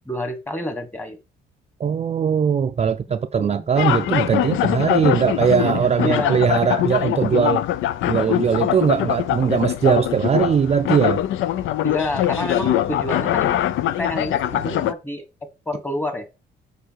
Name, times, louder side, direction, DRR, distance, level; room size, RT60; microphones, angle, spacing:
voice 1, 0.1-1.2 3.1-3.7 6.0-6.4 8.3-8.4 11.8-13.6 14.0-15.2 15.7-16.3, left 1 dB, 10° left, 1.5 m, -28 dB
voice 2, 1.8-7.6 8.1-11.2, right 7 dB, 35° right, 0.4 m, -20 dB
sound 1, 3.8-14.9, left 12 dB, 80° left, 0.5 m, -22 dB
6.8 x 4.7 x 4.6 m
cardioid pair, 90°, 20 cm